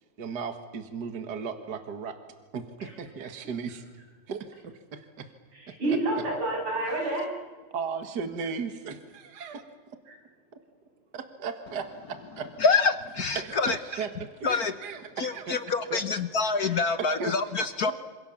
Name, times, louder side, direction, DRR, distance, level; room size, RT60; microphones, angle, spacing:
voice 1, 0.2-2.2 2.5-3.8 4.3-5.3 5.7-5.8 6.9-7.1 7.7-9.6 11.1-12.5 13.4-15.6 15.9-16.0 17.0-17.9, right 6 dB, 50° right, 7 dB, 2.2 m, -36 dB
voice 2, 5.5-7.3 10.1-10.2 16.4-16.8, right 2 dB, 90° right, 0 dB, 8.0 m, -29 dB
voice 3, 12.6-13.8 14.4-14.7 15.2-17.9, left 4 dB, 55° left, 11 dB, 1.3 m, -26 dB
27.5 x 27.0 x 7.3 m, 1.4 s
omnidirectional pair, 2.4 m